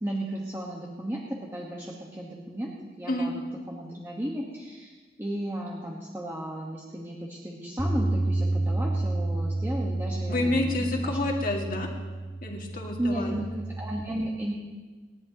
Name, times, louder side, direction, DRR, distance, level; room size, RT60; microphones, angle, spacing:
voice 1, 0.0-2.7 3.0-11.2 13.0-14.5, right 1 dB, 15° right, -3 dB, 1.4 m, -34 dB
Bass guitar, 7.8-14.0, right 2 dB, 10° left, 1.7 m, -30 dB
voice 2, 10.3-11.9 12.4-13.4, left 2 dB, 50° left, 0 dB, 2.1 m, -29 dB
28.0 x 11.0 x 3.0 m, 1.3 s
head